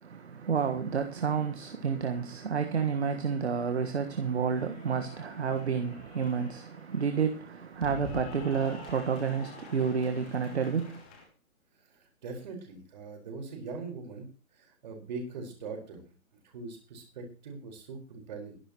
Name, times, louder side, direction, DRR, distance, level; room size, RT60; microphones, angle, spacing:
voice 1, 0.0-11.0, right 6 dB, 50° right, 1.6 m, -30 dB
Cheering / Applause, 3.5-11.2, left 3 dB, 5° left, 0.7 m, -47 dB
voice 2, 12.2-14.3 14.6-16.0 16.4-18.6, right 4 dB, 30° right, 4.8 m, -41 dB
23.5 x 11.0 x 3.1 m
figure-of-eight pair, 145°, 42 cm